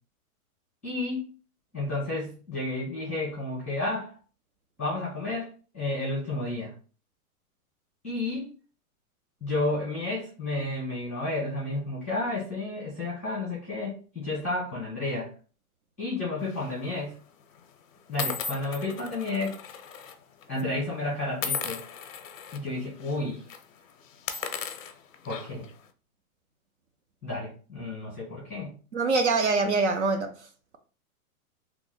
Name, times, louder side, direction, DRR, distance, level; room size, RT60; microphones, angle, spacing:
voice 1, 0.8-1.3 1.7-4.1 4.8-5.5 5.7-6.7 8.0-8.5 9.4-15.3 16.0-17.2 18.1-19.6 20.5-21.8 22.5-23.4 25.2-25.7 27.2-28.7, left 2 dB, 10° left, 0.5 m, -31 dB
sound 1, 16.5-16.8 17.6-17.7 18.2-20.1 20.4-20.6 21.4-22.6 23.0-23.2 23.5-23.6 24.1-25.7, left 6 dB, 60° left, 0.5 m, -35 dB
voice 2, 28.9-30.5, right 3 dB, 50° right, 0.5 m, -24 dB
2.9 x 2.0 x 3.8 m
hypercardioid pair, 180°, 45 cm